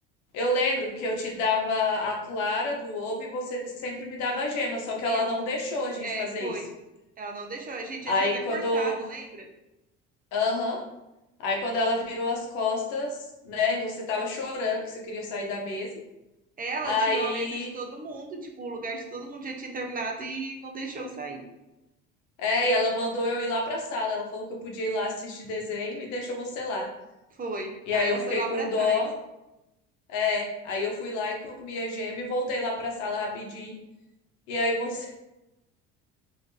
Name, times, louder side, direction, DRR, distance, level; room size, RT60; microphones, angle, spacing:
voice 1, 0.3-6.5 8.1-9.0 10.3-10.8 11.4-13.2 13.4-15.9 16.8-17.7 22.4-26.9 27.9-29.1 30.1-33.7 34.5-35.1, left 2 dB, 75° left, 0 dB, 0.9 m, -28 dB
voice 2, 5.1-5.5 6.0-6.7 7.2-9.5 16.6-21.4 27.3-29.0, right 3 dB, 30° right, 2 dB, 0.6 m, -35 dB
3.5 x 2.7 x 2.7 m, 0.95 s
supercardioid pair, 80°, 29 cm